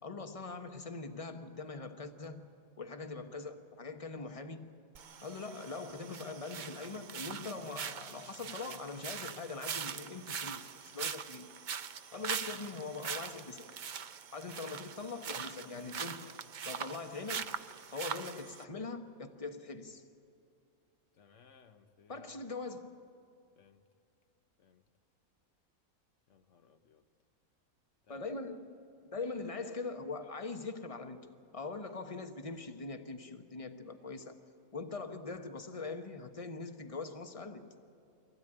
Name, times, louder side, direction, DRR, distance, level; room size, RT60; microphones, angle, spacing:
voice 1, 0.0-2.5 2.8-4.7 5.2-11.6 12.1-13.7 14.3-16.3 16.7-17.6 17.9-20.0 22.1-23.0 28.1-28.7 29.0-34.4 34.7-37.6, left 3 dB, 25° left, 1.0 m, -42 dB
sound 1, 4.9-18.6, right 7 dB, 60° right, 0.5 m, -42 dB
voice 2, 21.1-22.3 23.6-23.9 24.6-24.8 26.3-27.1 28.0-28.3, left 6 dB, 60° left, 1.3 m, -63 dB
24.5 x 16.5 x 8.9 m
omnidirectional pair, 1.5 m